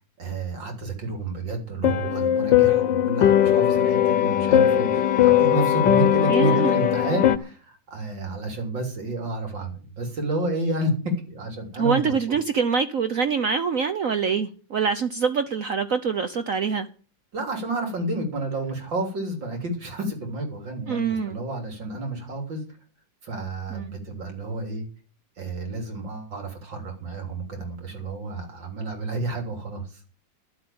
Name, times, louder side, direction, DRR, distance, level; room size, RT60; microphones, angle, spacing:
voice 1, 0.2-12.1 17.3-22.6 23.2-24.8 25.4-30.0, right 2 dB, 80° right, 4.3 m, -30 dB
sound 1, 1.8-7.4, left 11 dB, 75° left, 1.6 m, -19 dB
voice 2, 6.3-6.7 11.8-16.9 20.9-21.4 23.7-23.9, right 6 dB, 55° right, 1.1 m, -25 dB
12.5 x 7.7 x 8.8 m
omnidirectional pair, 2.0 m